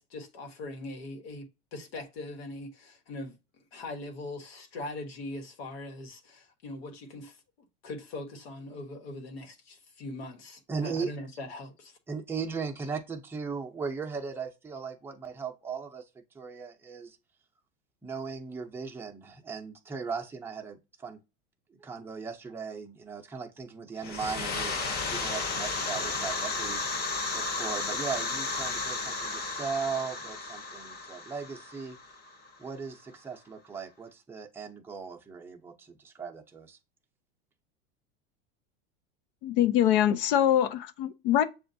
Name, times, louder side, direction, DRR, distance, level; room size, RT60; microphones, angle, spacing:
voice 1, 0.0-3.3 3.7-7.4 7.8-12.0, left 2 dB, 85° left, 1.2 m, -41 dB
voice 2, 10.7-11.1 12.1-17.2 18.0-21.2 21.7-32.0 32.6-36.8, right 5 dB, 10° right, 0.6 m, -38 dB
sound 1, 24.0-32.5, left 3 dB, 35° left, 1.0 m, -33 dB
voice 3, 39.4-41.4, left 11 dB, 65° left, 0.6 m, -24 dB
6.7 x 2.5 x 2.6 m
supercardioid pair, 120°, 29 cm